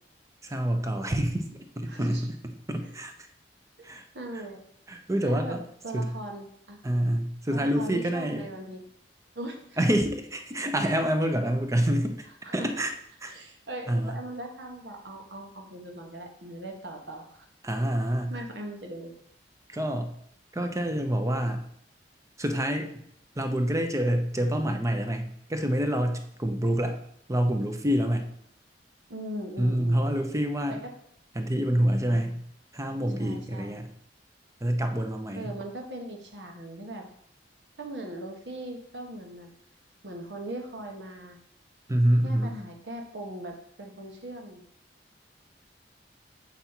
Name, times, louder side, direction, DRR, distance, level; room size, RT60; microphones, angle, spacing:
voice 1, 0.4-1.5 1.8-2.4 2.7-3.1 3.8-4.0 4.9-5.6 5.9-6.1 6.8-8.5 9.8-12.3 12.5-12.9 13.2-13.3 13.9-14.1 17.6-18.3 19.7-20.1 20.5-21.6 22.4-22.9 23.4-27.0 27.3-28.3 29.6-30.8 31.3-32.4 32.7-33.9 34.6-35.5 41.9-42.5, equal, 20° right, 6 dB, 0.7 m, -27 dB
voice 2, 1.9-2.3 2.8-2.9 3.8-3.9 4.1-4.6 5.2-6.8 7.5-8.8 9.3-9.8 12.4-12.7 13.3-17.4 17.8-17.9 18.3-19.1 29.1-30.2 30.7-30.9 32.1-32.4 33.2-33.8 35.3-37.1 37.8-39.5 40.0-41.4 42.2-44.6, right 1 dB, 70° right, 3 dB, 1.3 m, -40 dB
7.0 x 5.3 x 4.4 m, 0.68 s
head